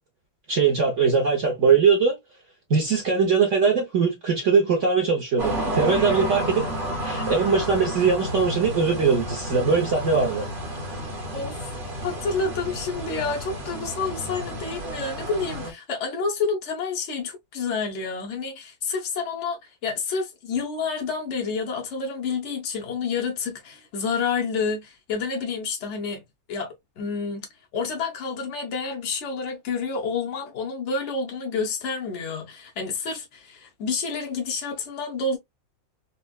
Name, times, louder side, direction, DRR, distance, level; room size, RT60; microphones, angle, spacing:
voice 1, 0.5-2.1 2.7-6.6 7.0-10.5, right 5 dB, 55° right, 0.8 m, -21 dB
sound 1, 5.4-15.7, equal, 35° right, 1.0 m, -31 dB
voice 2, 12.0-27.5 27.7-35.4, left 4 dB, 65° left, 0.7 m, -29 dB
4.2 x 2.1 x 2.3 m
omnidirectional pair, 2.1 m